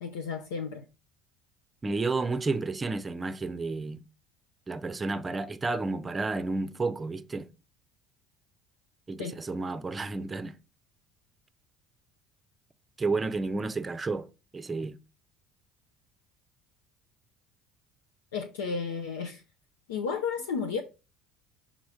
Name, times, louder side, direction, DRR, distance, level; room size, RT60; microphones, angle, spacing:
voice 1, 0.0-0.8 9.2-9.4 18.3-19.4 19.9-20.8, left 5 dB, 70° left, 0.7 m, -33 dB
voice 2, 1.8-4.0 4.7-7.5 9.1-10.6 13.0-14.3 14.5-15.0, right 3 dB, 20° right, 0.6 m, -31 dB
6.2 x 3.9 x 4.7 m
figure-of-eight pair, 60°, 0 cm